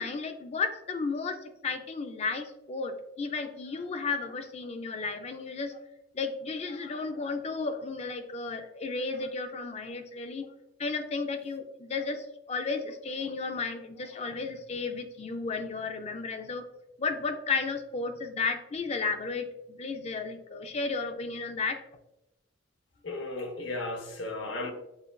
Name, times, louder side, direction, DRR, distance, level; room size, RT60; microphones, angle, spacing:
voice 1, 0.0-5.8 6.1-10.5 10.8-16.7 17.0-21.8, left 4 dB, 35° left, 0.4 m, -33 dB
voice 2, 23.0-24.7, left 2 dB, 80° left, 0.8 m, -35 dB
7.2 x 2.4 x 2.2 m
head